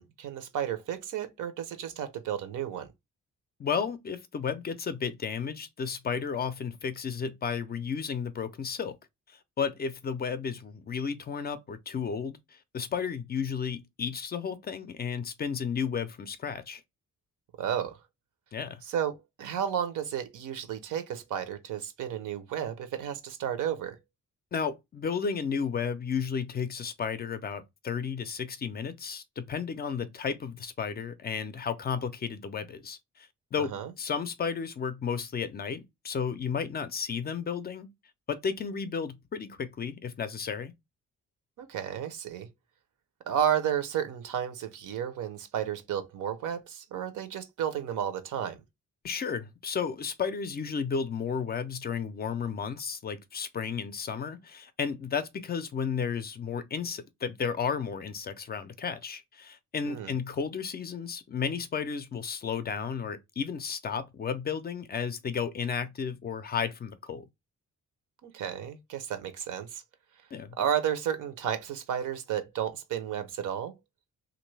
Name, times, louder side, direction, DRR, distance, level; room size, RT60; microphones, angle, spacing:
voice 1, 0.0-2.9 17.6-18.0 18.9-24.0 33.6-33.9 41.6-42.5 43.3-48.6 59.9-60.1 68.2-69.8 70.6-73.7, right 9 dB, 85° right, 0.8 m, -32 dB
voice 2, 3.6-9.0 9.3-16.8 18.5-18.8 24.5-37.9 38.3-40.7 49.0-67.3 70.3-70.6, left 6 dB, 35° left, 0.4 m, -33 dB
3.0 x 2.5 x 3.2 m
cardioid pair, 155°, 30 cm